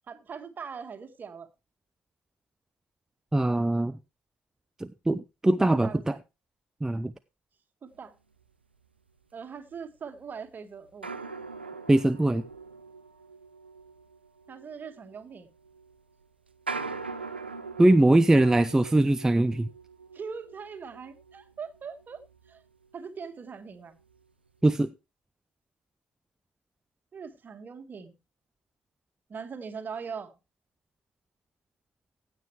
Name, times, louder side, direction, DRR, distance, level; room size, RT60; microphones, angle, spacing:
voice 1, 0.1-1.5 5.8-6.2 7.8-8.1 9.3-11.1 14.5-15.5 20.1-22.2 22.5-22.6 22.9-24.0 27.1-28.1 29.3-30.3, right 6 dB, 35° right, 1.8 m, -41 dB
voice 2, 3.3-4.0 4.8-6.2 6.8-7.1 11.9-12.4 17.8-19.7 24.6-24.9, right 1 dB, 10° right, 0.5 m, -22 dB
sound 1, 9.7-9.8 11.0-23.0 23.3-23.4 24.0-24.2, right 4 dB, 90° right, 0.6 m, -42 dB
15.5 x 7.8 x 3.2 m
figure-of-eight pair, 55°, 5 cm